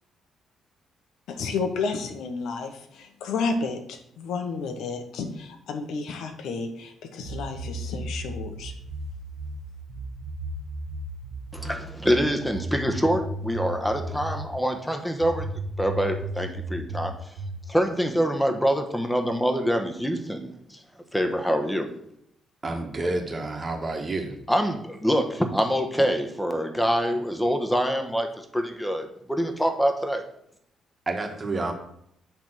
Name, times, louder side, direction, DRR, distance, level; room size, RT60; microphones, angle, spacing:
voice 1, 1.3-8.7, left 4 dB, 80° left, 6 dB, 1.1 m, -31 dB
sound 1, 7.2-14.5 15.2-17.7, right 1 dB, 80° right, 1.2 m, -34 dB
voice 2, 11.5-15.5 15.8-17.1 17.7-20.8 21.1-21.9 24.5-30.2, equal, 5° left, 5 dB, 1.1 m, -25 dB
voice 3, 22.6-24.3 31.0-31.7, right 2 dB, 25° right, 3 dB, 1.5 m, -29 dB
8.9 x 3.5 x 6.0 m, 0.72 s
cardioid pair, 90°, 0 cm